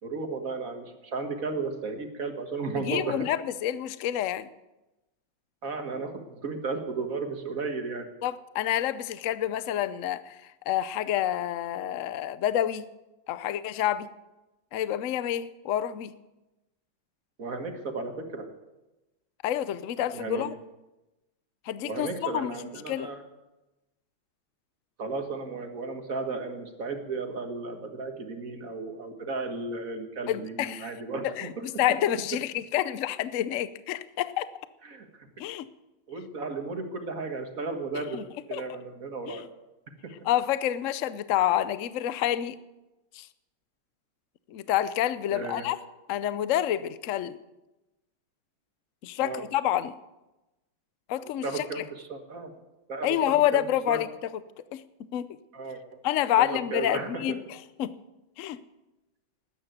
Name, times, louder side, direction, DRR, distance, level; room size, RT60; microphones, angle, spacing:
voice 1, 0.0-3.3 5.6-8.1 17.4-18.5 20.1-20.5 21.8-23.2 25.0-31.5 34.9-35.1 36.1-38.2 38.5-39.5 40.0-40.3 45.3-45.7 49.2-49.5 51.4-52.5 52.9-53.2 53.5-54.0 55.5-56.0 56.4-57.4, right 3 dB, 45° right, 5 dB, 1.8 m, -34 dB
voice 2, 2.7-4.5 8.2-10.4 10.7-12.9 13.3-14.1 14.7-16.1 19.4-20.5 21.7-22.5 22.9-23.1 30.3-30.9 31.2-34.5 35.4-35.7 38.1-38.2 38.5-38.8 39.3-39.4 40.2-42.6 43.1-43.3 44.5-45.8 46.1-47.4 49.0-49.9 51.1-51.6 53.0-54.3 54.7-54.8 55.1-55.3 56.0-57.9 58.4-58.6, left 12 dB, 80° left, 15 dB, 0.7 m, -28 dB
13.0 x 9.7 x 9.2 m, 1.0 s
omnidirectional pair, 2.2 m